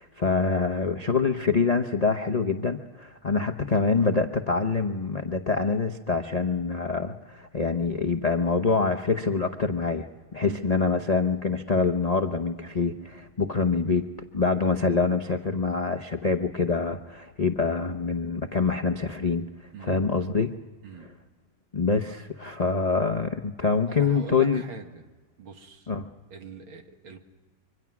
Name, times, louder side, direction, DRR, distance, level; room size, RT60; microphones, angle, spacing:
voice 1, 0.0-14.1 14.3-19.5 19.8-20.6 21.7-24.6 25.9-26.1, left 4 dB, 55° left, 5 dB, 0.4 m, -25 dB
voice 2, 23.9-25.1 25.4-25.9 26.3-27.2, right 6 dB, 80° right, 5 dB, 2.6 m, -42 dB
26.0 x 24.5 x 6.0 m, 1.3 s
omnidirectional pair, 2.2 m